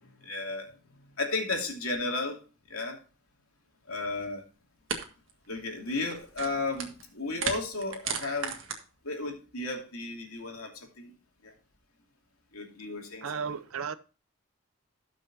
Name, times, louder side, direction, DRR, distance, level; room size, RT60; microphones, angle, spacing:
voice 1, 0.0-0.7 1.2-2.4 2.7-3.0 3.9-4.4 5.5-8.6 9.0-11.1 11.4-11.5 12.5-13.6, left 3 dB, 85° left, 2.7 m, -34 dB
sound 1, 4.2-4.3 4.9-5.0 5.3-5.6 6.0-7.0 7.3-8.8, right 6 dB, 60° right, 1.7 m, -34 dB
voice 2, 13.2-13.9, right 6 dB, 80° right, 0.7 m, -34 dB
17.5 x 6.2 x 2.7 m
head